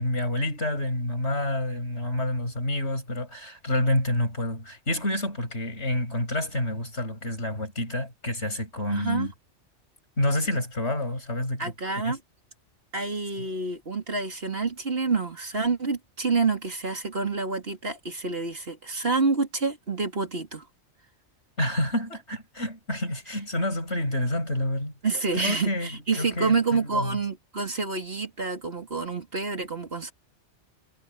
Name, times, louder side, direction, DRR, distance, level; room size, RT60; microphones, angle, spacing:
voice 1, 0.0-9.3 10.2-11.7 12.0-12.2 13.4-13.5 21.6-24.9 25.3-25.9 26.2-27.2, left 1 dB, 65° left, 7.4 m, -28 dB
voice 2, 8.9-9.3 11.6-12.2 12.9-20.6 25.0-30.1, right 4 dB, 55° right, 3.2 m, -28 dB
omnidirectional pair, 1.2 m